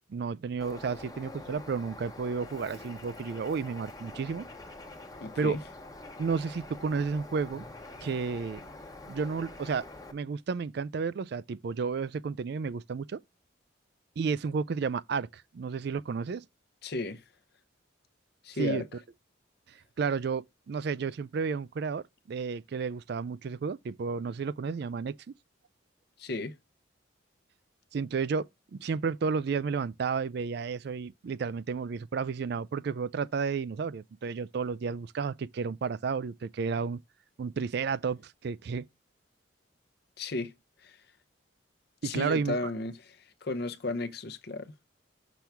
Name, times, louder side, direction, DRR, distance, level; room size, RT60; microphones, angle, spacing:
voice 1, 0.1-4.4 5.4-5.6 6.2-7.6 8.0-8.6 9.1-9.8 10.1-13.2 14.2-16.5 18.6-18.8 20.0-25.1 27.9-28.4 28.8-37.0 37.4-38.8 42.0-42.6, right 5 dB, 55° right, 0.3 m, -32 dB
Bird, 0.6-10.1, left 2 dB, 20° left, 0.8 m, -46 dB
voice 2, 5.2-5.6 16.8-17.2 18.4-18.9 26.2-26.6 40.2-40.5 40.8-41.0 42.0-44.7, left 2 dB, 55° left, 0.7 m, -34 dB
6.1 x 3.4 x 5.8 m
head